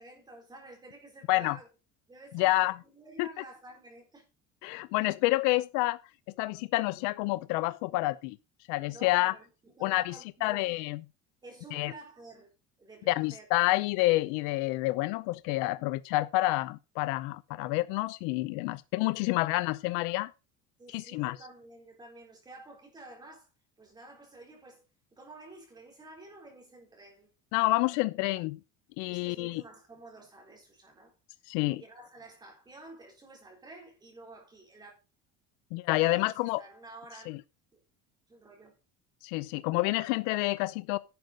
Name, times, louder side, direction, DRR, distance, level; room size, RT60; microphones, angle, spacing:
voice 1, 0.0-1.7 2.1-4.2 8.9-10.7 11.4-12.5 12.8-13.4 17.5-17.7 19.2-19.3 20.8-23.5 23.8-24.8 25.1-27.3 29.1-31.1 31.7-34.9 36.1-37.3 37.7-37.8 38.3-38.8, right 2 dB, 15° right, 4.2 m, -51 dB
voice 2, 2.3-2.8 3.2-3.3 4.6-6.0 6.4-8.4 8.7-9.3 9.8-11.0 11.7-11.9 13.1-20.3 20.9-21.4 27.5-28.6 29.0-29.6 31.5-31.8 35.7-36.6 37.3-37.4 39.2-41.0, left 20 dB, 85° left, 0.7 m, -28 dB
11.5 x 7.8 x 5.2 m
cardioid pair, 180°, 30 cm